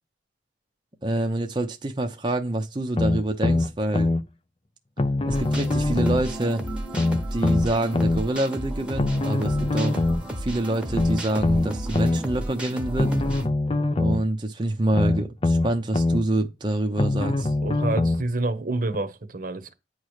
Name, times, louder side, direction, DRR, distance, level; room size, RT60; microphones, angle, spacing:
voice 1, 1.0-4.1 5.3-6.6 7.3-10.1 10.4-13.2 14.0-17.5, right 1 dB, 25° right, 0.7 m, -26 dB
sound 1, 3.0-4.2 5.0-6.2 6.9-8.2 9.0-10.2 10.9-12.2 13.0-14.2 14.9-16.2 17.0-18.2 18.9-19.0, left 2 dB, 25° left, 0.5 m, -23 dB
sound 2, 5.3-13.5, right 1 dB, 5° right, 1.1 m, -33 dB
voice 2, 17.6-19.7, right 2 dB, 45° right, 1.0 m, -28 dB
9.4 x 3.2 x 6.5 m
head